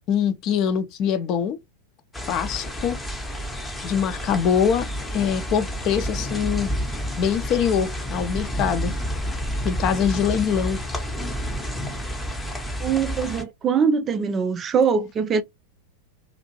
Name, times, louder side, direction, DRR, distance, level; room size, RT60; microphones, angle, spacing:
voice 1, 0.1-1.6 2.3-3.0 3.8-4.9 5.1-6.7 7.2-8.9 9.6-10.8, left 8 dB, 35° left, 0.5 m, -23 dB
sound 1, 2.1-13.4, equal, 10° left, 0.7 m, -30 dB
voice 2, 12.8-15.4, right 6 dB, 25° right, 0.3 m, -22 dB
2.6 x 2.5 x 2.7 m
figure-of-eight pair, 90°, 0 cm